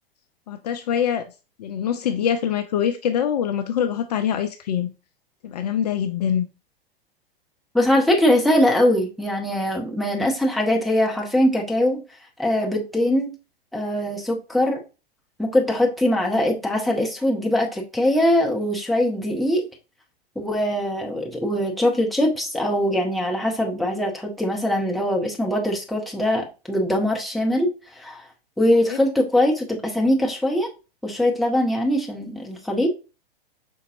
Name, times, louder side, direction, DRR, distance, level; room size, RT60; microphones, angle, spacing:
voice 1, 0.5-1.3 1.6-4.9 5.4-6.5 28.9-29.0, left 9 dB, 45° left, 8 dB, 0.4 m, -24 dB
voice 2, 7.7-12.0 12.4-13.3 13.7-14.8 15.4-19.7 20.4-28.2 28.6-30.7 31.0-32.9, left 1 dB, ahead, -1 dB, 0.7 m, -22 dB
5.3 x 3.9 x 2.6 m, 0.31 s
figure-of-eight pair, 100°, 30 cm